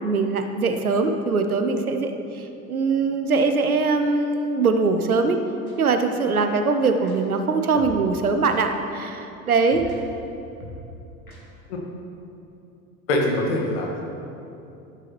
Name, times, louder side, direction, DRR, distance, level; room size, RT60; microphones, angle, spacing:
voice 1, 0.0-5.4 5.8-9.9, right 4 dB, 85° right, 7 dB, 0.8 m, -22 dB
sound 1, 5.7-5.8 7.0-7.1 7.8-8.0 8.4-8.6 9.7-10.0 10.6-10.8 11.3-11.4, left 1 dB, 85° left, 1.6 m, -40 dB
voice 2, 13.1-14.1, left 1 dB, 55° left, 0 dB, 1.7 m, -23 dB
13.0 x 6.9 x 3.0 m, 2.8 s
figure-of-eight pair, 80°, 42 cm